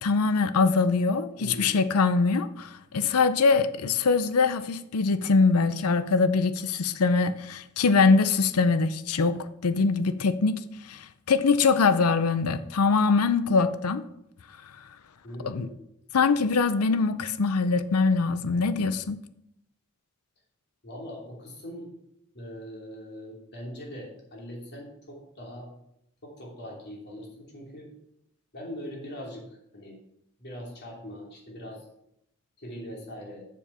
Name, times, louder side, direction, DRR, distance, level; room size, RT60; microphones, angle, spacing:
voice 1, 0.0-14.0 15.4-15.7 16.1-19.2, left 4 dB, 90° left, 13 dB, 0.6 m, -23 dB
voice 2, 1.4-1.8 15.2-15.7 20.8-21.9 22.3-25.7 26.2-27.9 28.5-30.0 30.4-31.8 32.6-33.5, equal, 50° left, -2 dB, 2.9 m, -41 dB
7.3 x 7.0 x 5.5 m, 0.78 s
head